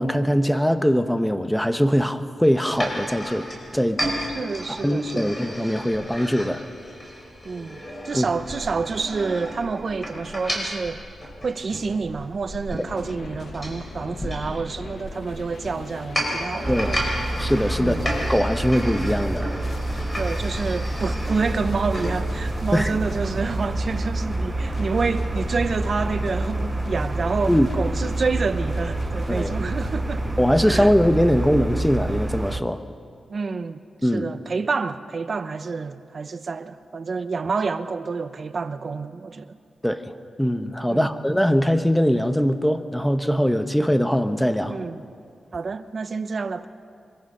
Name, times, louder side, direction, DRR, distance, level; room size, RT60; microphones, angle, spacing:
voice 1, 0.0-3.5 3.7-4.0 4.7-6.6 8.1-8.3 16.7-16.9 17.4-19.5 22.7-23.0 27.5-27.7 29.3-29.5 30.4-32.8 34.0-34.3 39.8-44.8, equal, 5° left, 1.1 m, -21 dB
sound 1, 2.7-22.2, equal, 20° left, 5.6 m, -33 dB
voice 2, 4.3-5.3 7.4-11.0 11.4-17.0 17.8-18.1 20.1-30.2 30.7-30.9 33.3-39.6 40.9-41.2 44.6-45.0 45.5-46.7, right 4 dB, 50° right, 0.9 m, -28 dB
sound 2, 12.9-30.9, left 4 dB, 60° left, 1.2 m, -40 dB
sound 3, 16.6-32.6, right 2 dB, 20° right, 0.7 m, -28 dB
24.5 x 22.5 x 5.6 m
cardioid pair, 85°, 0 cm